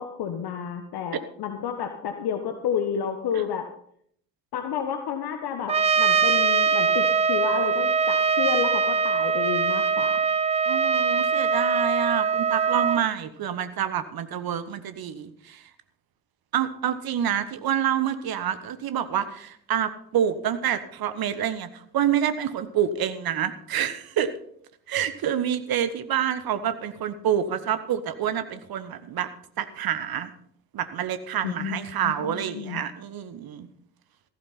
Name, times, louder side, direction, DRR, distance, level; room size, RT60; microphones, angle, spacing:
voice 1, 0.0-3.6 4.5-10.2 31.4-32.8, left 8 dB, 50° left, 7 dB, 1.3 m, -31 dB
Trumpet, 5.7-13.0, right 5 dB, 15° right, 0.4 m, -22 dB
voice 2, 10.7-15.6 16.5-24.3 24.9-29.3 29.6-30.3 30.7-33.7, right 9 dB, 45° right, 12 dB, 1.3 m, -27 dB
14.5 x 12.0 x 4.2 m, 0.65 s
figure-of-eight pair, 45°, 49 cm